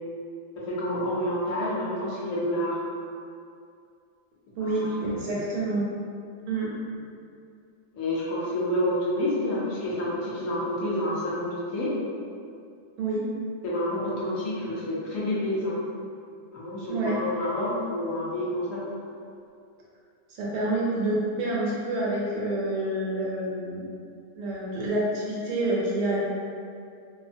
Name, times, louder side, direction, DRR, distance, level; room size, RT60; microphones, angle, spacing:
voice 1, 0.7-2.8 4.6-4.7 5.3-5.4 7.9-11.9 13.6-15.8 16.5-18.8, left 1 dB, 70° left, -7 dB, 1.0 m, -28 dB
voice 2, 4.6-5.9 6.5-6.7 13.0-13.3 16.9-17.1 20.3-23.8 24.3-26.2, right 2 dB, 70° right, -5 dB, 0.9 m, -28 dB
2.7 x 2.1 x 2.5 m, 2.4 s
omnidirectional pair, 1.5 m